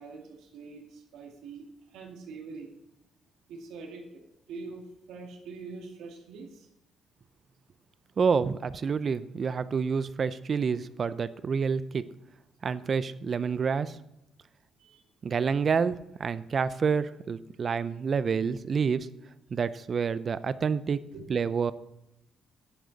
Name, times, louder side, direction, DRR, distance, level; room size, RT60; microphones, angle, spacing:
voice 1, 0.0-2.7 3.5-6.7 14.8-15.1 15.5-15.6 21.1-21.3, right 4 dB, 85° right, 2 dB, 2.1 m, -44 dB
voice 2, 8.2-12.0 12.6-14.0 15.2-19.1 19.5-21.0 21.3-21.7, right 6 dB, 45° right, 15 dB, 0.6 m, -28 dB
10.5 x 9.5 x 4.0 m, 0.87 s
cardioid pair, 90°, 0 cm